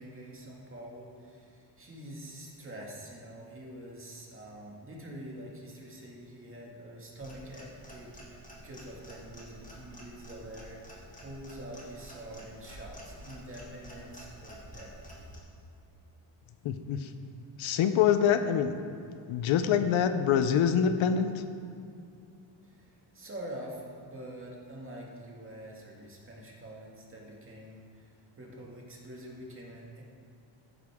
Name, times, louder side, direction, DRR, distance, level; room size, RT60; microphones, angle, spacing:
voice 1, 0.0-15.0 22.6-30.0, right 1 dB, 25° right, -2 dB, 2.2 m, -46 dB
Clock, 7.2-15.4, equal, 15° left, 2.3 m, -49 dB
voice 2, 16.6-17.1 17.6-18.8 19.3-21.4, left 8 dB, 75° left, 10 dB, 0.8 m, -25 dB
13.5 x 10.5 x 3.7 m, 2.5 s
cardioid pair, 135°, 49 cm